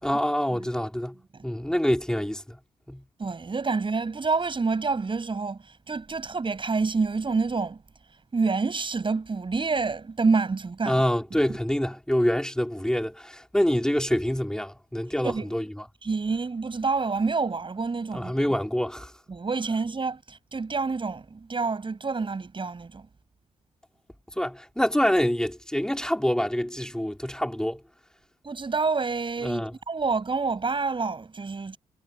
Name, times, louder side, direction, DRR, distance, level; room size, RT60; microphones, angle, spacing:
voice 1, 0.0-1.2 1.4-2.6 2.9-3.0 10.9-15.7 18.1-19.1 24.4-27.8 29.4-29.7, equal, 5° left, 4.4 m, -26 dB
voice 2, 3.2-7.8 8.3-11.0 15.2-15.5 16.0-18.6 19.3-23.1 28.4-31.8, right 4 dB, 40° right, 6.9 m, -28 dB
supercardioid pair, 50°, 13 cm